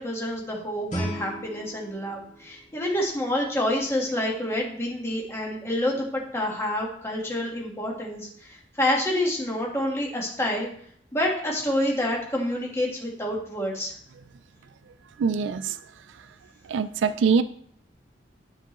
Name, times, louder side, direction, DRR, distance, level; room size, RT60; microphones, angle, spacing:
voice 1, 0.0-10.7 11.1-13.9, left 1 dB, 15° left, -1 dB, 1.4 m, -28 dB
Guitar, 0.9-3.6, right 1 dB, 40° left, 2.8 m, -36 dB
voice 2, 15.2-15.8 16.7-17.4, right 5 dB, 80° right, 13 dB, 0.4 m, -23 dB
9.3 x 4.7 x 3.0 m, 0.62 s
head